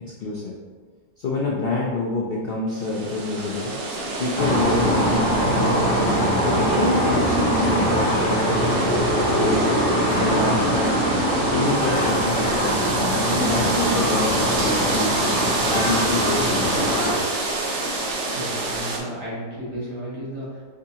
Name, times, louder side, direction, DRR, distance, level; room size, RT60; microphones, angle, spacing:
voice 1, 0.2-0.5 1.2-3.7 4.2-5.9 6.5-9.1 9.4-9.6 10.2-11.0 11.5-12.8 13.3-15.1 15.7-16.9, left 3 dB, 70° left, -4 dB, 0.5 m, -27 dB
sound 1, 2.7-19.0, right 2 dB, 55° right, 0.9 m, -27 dB
sound 2, 4.4-17.2, equal, 40° left, 0.9 m, -22 dB
voice 2, 18.1-20.8, equal, 85° right, -8 dB, 2.2 m, -34 dB
5.0 x 3.5 x 2.8 m, 1.5 s
omnidirectional pair, 1.7 m